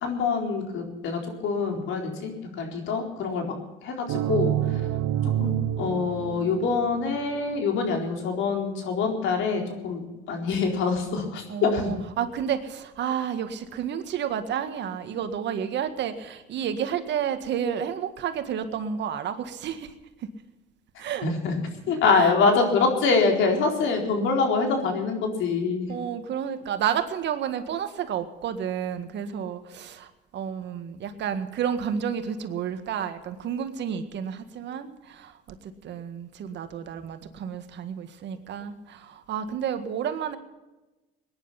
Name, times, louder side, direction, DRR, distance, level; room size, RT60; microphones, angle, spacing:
voice 1, 0.0-3.5 3.8-4.8 5.4-11.9 21.2-21.6 21.9-25.9, left 4 dB, 65° left, 2 dB, 4.2 m, -25 dB
sound 1, 4.1-7.7, right 12 dB, 85° right, 0.9 m, -28 dB
voice 2, 11.5-19.9 21.0-21.3 21.9-22.3 25.9-40.4, right 8 dB, 55° right, 8 dB, 1.8 m, -31 dB
20.5 x 10.5 x 5.9 m, 1.1 s
cardioid pair, 105°, 21 cm